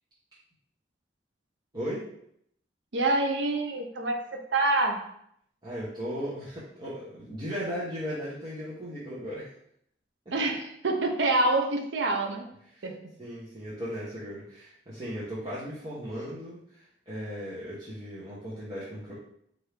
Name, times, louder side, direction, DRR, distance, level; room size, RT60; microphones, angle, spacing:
voice 1, 2.9-5.0 10.3-12.5 12.8-13.0, right 2 dB, 85° right, 4 dB, 0.6 m, -26 dB
voice 2, 5.6-9.5 12.7-12.9 13.2-19.1, equal, 25° right, -10 dB, 0.9 m, -37 dB
4.4 x 2.6 x 3.3 m, 0.71 s
head